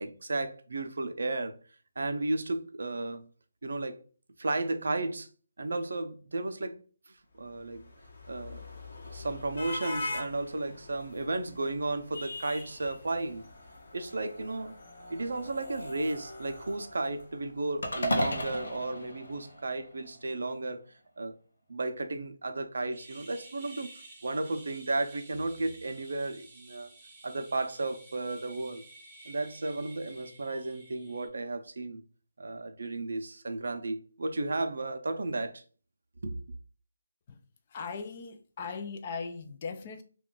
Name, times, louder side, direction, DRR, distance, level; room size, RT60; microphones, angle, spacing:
voice 1, 0.0-1.6 2.0-3.3 3.6-4.0 4.4-5.3 5.6-6.8 7.1-7.8 8.3-8.6 9.0-13.4 13.9-14.7 15.1-20.8 21.2-21.4 21.7-26.9 27.2-28.8 29.3-32.0 32.4-35.6 36.2-36.4, right 2 dB, 70° right, 0.5 m, -34 dB
sound 1, 7.5-17.8, left 2 dB, 50° left, 0.9 m, -43 dB
sound 2, 17.8-20.2, equal, 80° left, 0.8 m, -33 dB
sound 3, 22.9-31.3, right 2 dB, 10° right, 0.7 m, -53 dB
voice 2, 37.7-40.0, left 5 dB, 30° left, 0.3 m, -39 dB
2.4 x 2.2 x 3.7 m
hypercardioid pair, 170°, 0 cm